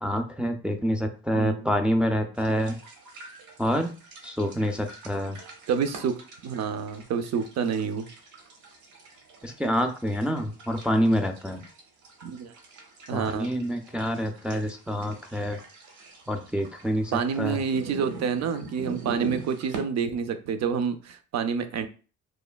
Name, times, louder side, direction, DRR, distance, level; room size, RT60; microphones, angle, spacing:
voice 1, 0.0-2.8 3.6-3.9 4.2-5.4 9.4-11.6 13.1-15.6 16.3-17.6, equal, 5° right, 4 dB, 0.3 m, -27 dB
sound 1, 2.3-19.8, right 3 dB, 80° right, 0.8 m, -44 dB
voice 2, 5.7-8.1 12.2-12.5 13.1-13.5 17.1-21.9, right 6 dB, 60° right, 8 dB, 0.5 m, -28 dB
3.1 x 2.1 x 2.2 m, 0.36 s
cardioid pair, 90°, 30 cm